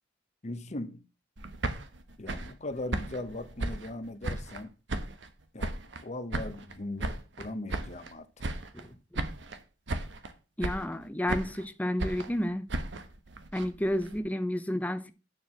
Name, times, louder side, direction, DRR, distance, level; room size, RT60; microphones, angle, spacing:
voice 1, 0.4-1.0 2.2-4.7 5.5-5.8 6.0-8.3, left 2 dB, 35° left, 0.9 m, -39 dB
sound 1, 1.4-4.6 4.9-6.0 6.3-8.1 8.4-8.9 9.1-9.6 9.9-10.3 10.6-11.7 12.0-14.2, right 2 dB, 60° right, 1.1 m, -36 dB
voice 2, 10.6-12.7 13.5-15.1, left 1 dB, 10° left, 0.7 m, -31 dB
9.7 x 4.7 x 5.9 m
head